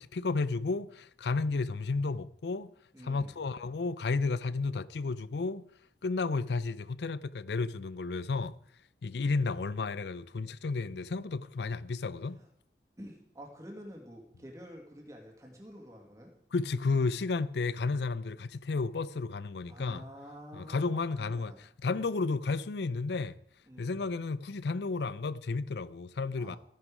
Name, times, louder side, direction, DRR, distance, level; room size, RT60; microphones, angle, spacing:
voice 1, 0.0-2.7 3.0-5.7 6.0-8.6 9.0-12.4 16.5-20.0 20.5-23.4 23.8-26.6, left 4 dB, 75° left, 0.5 m, -32 dB
voice 2, 2.9-3.4 12.4-12.5 13.0-16.3 19.7-21.6 23.7-24.0 26.4-26.6, equal, 20° right, 2.3 m, -48 dB
14.0 x 10.5 x 4.9 m
head